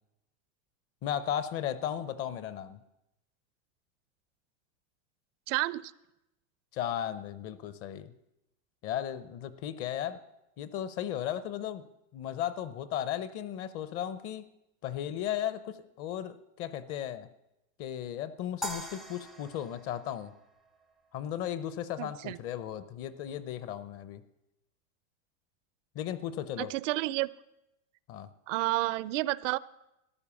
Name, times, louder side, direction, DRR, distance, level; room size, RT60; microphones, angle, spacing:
voice 1, 1.0-2.8 6.7-8.1 8.8-10.2 10.6-11.8 12.1-14.5 14.8-17.3 17.8-20.3 21.1-24.2 25.9-26.7 28.1-28.3, left 10 dB, 35° left, 15 dB, 0.7 m, -35 dB
voice 2, 5.5-5.9 22.0-22.4 26.6-27.3 28.5-29.6, right 19 dB, 60° right, 19 dB, 0.5 m, -30 dB
sound 1, 18.6-21.0, left 1 dB, ahead, 0.4 m, -42 dB
14.0 x 10.5 x 7.0 m, 0.88 s
supercardioid pair, 145°, 42 cm